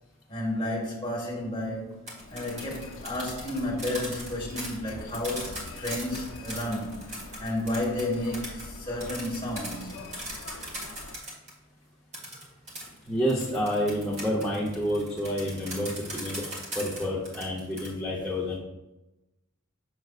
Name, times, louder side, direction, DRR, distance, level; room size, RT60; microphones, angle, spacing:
voice 1, 0.3-7.0 7.4-10.0, left 1 dB, 20° left, 1.7 m, -32 dB
sound 1, 1.9-11.5 12.1-17.9, right 1 dB, 30° right, 1.7 m, -39 dB
Human voice, 2.2-11.2, left 3 dB, 70° left, 0.6 m, -45 dB
voice 2, 13.1-16.4 16.7-18.6, equal, 5° left, 0.8 m, -29 dB
7.0 x 6.2 x 2.4 m
head